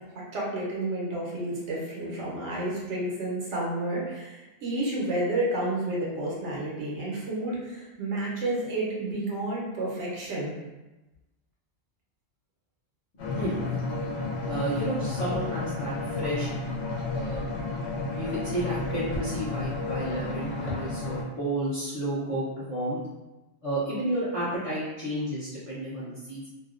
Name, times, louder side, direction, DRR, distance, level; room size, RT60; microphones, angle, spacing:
voice 1, 0.1-10.5, right 1 dB, 80° right, -5 dB, 1.1 m, -31 dB
sound 1, 13.2-21.2, left 3 dB, 70° left, 0.9 m, -31 dB
voice 2, 13.3-13.8 14.5-16.5 17.1-17.4 18.1-23.0 23.6-26.5, right 1 dB, 40° left, -11 dB, 0.6 m, -31 dB
2.6 x 2.1 x 2.4 m, 1.0 s
omnidirectional pair, 1.2 m